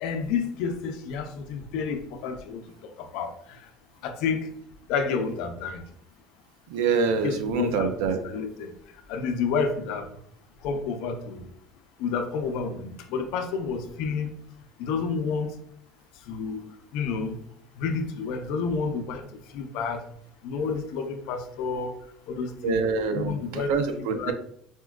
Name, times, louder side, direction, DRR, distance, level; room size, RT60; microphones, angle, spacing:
voice 1, 0.0-2.6 3.0-3.3 4.0-4.5 4.9-5.8 7.2-7.9 8.2-8.7 9.1-10.1 10.6-11.4 12.0-14.3 14.8-15.5 16.3-16.6 16.9-17.3 17.8-19.2 19.5-20.0 20.4-21.9 22.3-22.8 23.1-23.7 24.0-24.3, left 5 dB, 70° left, 6 dB, 0.5 m, -29 dB
voice 2, 6.7-8.2 22.6-24.3, right 5 dB, 90° right, 8 dB, 0.4 m, -26 dB
4.3 x 2.1 x 2.3 m, 0.69 s
cardioid pair, 150°, 0 cm